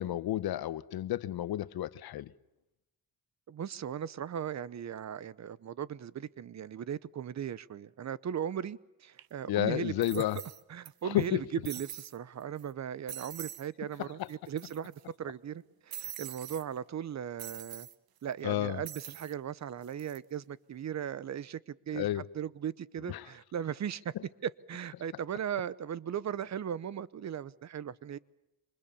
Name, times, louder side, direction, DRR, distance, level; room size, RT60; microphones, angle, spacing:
voice 1, 0.0-2.3 9.5-10.4 11.0-11.4 14.0-14.3 18.4-18.8 21.9-22.2 23.1-23.3, left 13 dB, 80° left, 1.1 m, -31 dB
voice 2, 3.5-10.2 10.7-14.9 15.2-17.9 18.2-24.1 24.4-28.2, right 9 dB, 45° right, 0.9 m, -38 dB
sound 1, 9.2-9.3 10.0-10.9 11.2-11.3 11.7-12.2 12.6-12.7 13.1-13.7 14.0-14.1 14.3-15.0 15.9-16.6 17.4-18.0 18.9-19.3 19.8-20.2, right 11 dB, 70° right, 1.4 m, -44 dB
28.0 x 25.5 x 7.2 m
cardioid pair, 135°, 37 cm